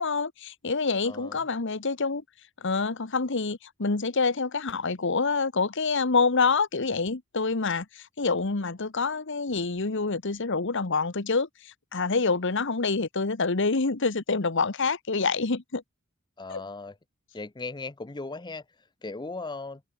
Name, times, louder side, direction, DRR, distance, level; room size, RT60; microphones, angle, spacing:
voice 1, 0.0-2.2 2.6-7.8 8.2-11.5 11.9-15.8 16.5-16.6, left 4 dB, 60° left, 1.2 m, -26 dB
voice 2, 1.0-1.4 16.4-17.0 17.3-18.6 19.0-19.8, left 3 dB, 20° left, 0.7 m, -37 dB
head